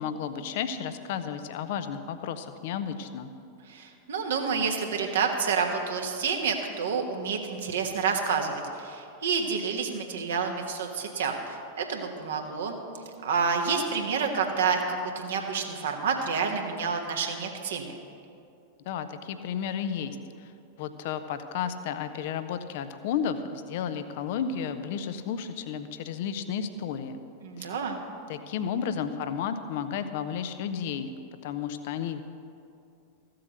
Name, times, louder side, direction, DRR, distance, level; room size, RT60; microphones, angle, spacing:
voice 1, 0.0-3.3 18.9-20.5 20.8-27.2 27.6-27.7 28.3-31.1 31.4-32.2, left 7 dB, 50° left, 10 dB, 0.7 m, -32 dB
voice 2, 3.7-12.8 13.2-18.0 27.4-28.0, right 5 dB, 65° right, 3 dB, 1.4 m, -29 dB
14.5 x 7.7 x 6.6 m, 2.5 s
figure-of-eight pair, 90°, 0 cm